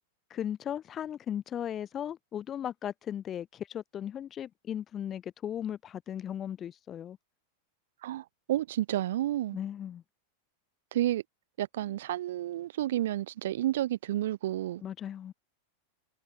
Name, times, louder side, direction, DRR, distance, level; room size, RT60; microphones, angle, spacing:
voice 1, 0.3-7.2 9.5-10.0 14.8-15.3, left 10 dB, 25° left, 0.8 m, -37 dB
voice 2, 8.0-9.6 10.9-11.2 11.6-14.8, right 13 dB, 55° right, 0.6 m, -31 dB
figure-of-eight pair, 90°, 0 cm